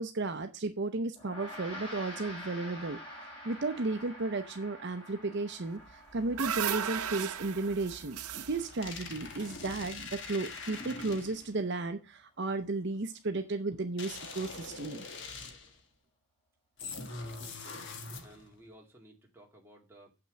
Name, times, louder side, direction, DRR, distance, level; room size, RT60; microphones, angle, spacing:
voice 1, 0.0-3.0 3.4-15.1, right 3 dB, 50° right, 7 dB, 0.7 m, -34 dB
Gong, 1.2-10.7, equal, 25° left, 4.2 m, -48 dB
sound 1, 5.9-10.2, right 8 dB, 85° right, 0.7 m, -37 dB
sound 2, 8.4-11.6 14.0-15.8 16.8-18.5, left 4 dB, 55° left, 1.4 m, -43 dB
voice 2, 17.3-17.9 18.2-20.1, right 1 dB, 10° right, -1 dB, 2.1 m, -56 dB
7.8 x 6.0 x 6.3 m, 0.29 s
head